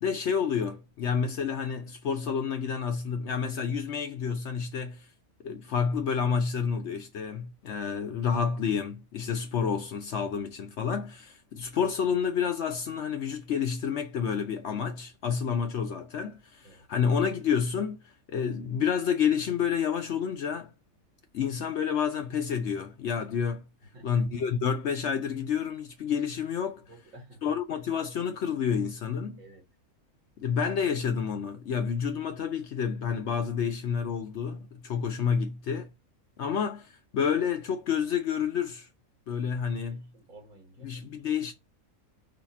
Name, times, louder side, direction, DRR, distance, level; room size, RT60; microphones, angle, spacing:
voice 1, 0.0-5.1 5.4-18.0 18.3-20.7 21.3-23.7 24.0-26.8 27.4-29.4 30.4-35.9 36.4-38.9 39.3-40.1 40.8-41.5, left 7 dB, 65° left, 0.8 m, -29 dB
voice 2, 26.9-27.6 29.4-29.6 39.9-40.9, right 2 dB, 65° right, 1.8 m, -52 dB
4.9 x 2.4 x 4.2 m
omnidirectional pair, 1.5 m